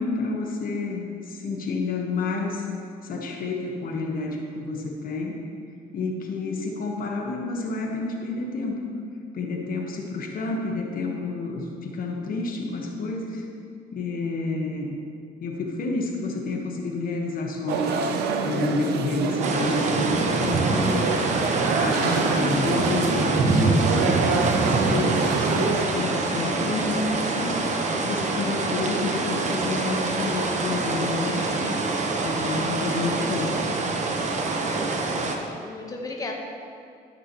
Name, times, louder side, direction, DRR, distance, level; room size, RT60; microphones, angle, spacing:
voice 1, 0.0-2.7 3.0-5.4 5.9-8.8 9.3-13.5 13.9-15.0 15.4-18.0 18.4-21.2 21.8-27.6 28.0-31.6 32.2-33.5, left 3 dB, 60° left, 1 dB, 1.3 m, -29 dB
sound 1, 17.7-25.8, right 5 dB, 80° right, 0.6 m, -27 dB
sound 2, 19.4-35.4, right 3 dB, 45° right, 1.0 m, -25 dB
voice 2, 34.4-35.3 35.6-36.3, left 3 dB, 20° left, 1 dB, 1.1 m, -37 dB
13.5 x 5.9 x 3.0 m, 2.4 s
supercardioid pair, 75°, 17 cm